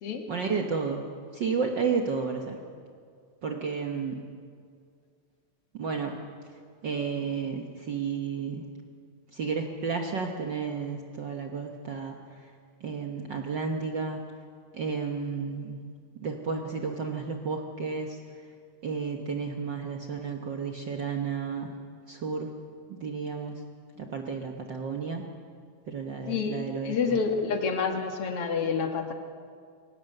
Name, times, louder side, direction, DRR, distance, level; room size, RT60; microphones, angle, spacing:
voice 1, 0.3-1.1 1.3-2.6 3.4-4.2 5.7-6.2 6.8-8.6 9.3-12.5 12.8-14.2 14.7-15.8 16.2-18.2 18.8-21.7 22.1-22.5 22.9-23.6 24.0-25.2 25.9-27.0, right 5 dB, 75° right, 3 dB, 1.0 m, -32 dB
voice 2, 26.3-29.1, left 5 dB, 50° left, 4 dB, 2.2 m, -28 dB
23.5 x 18.0 x 6.7 m, 2.1 s
omnidirectional pair, 3.8 m